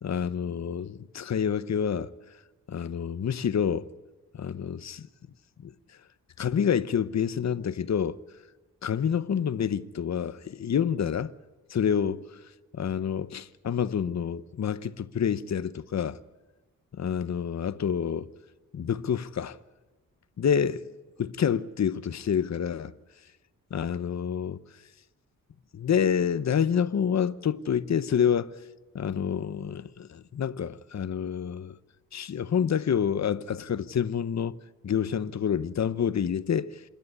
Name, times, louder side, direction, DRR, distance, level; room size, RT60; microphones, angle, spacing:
voice 1, 0.0-2.1 2.7-3.9 4.3-5.1 5.6-5.7 6.4-8.2 8.8-11.3 11.7-12.4 12.7-16.2 16.9-18.3 18.7-19.6 20.4-20.9 21.2-22.9 23.7-24.6 25.7-28.5 28.9-31.8 32.1-34.6 34.8-36.8, left 8 dB, 50° left, 0.8 m, -28 dB
27.0 x 10.5 x 9.7 m
wide cardioid pair, 100°, 35 cm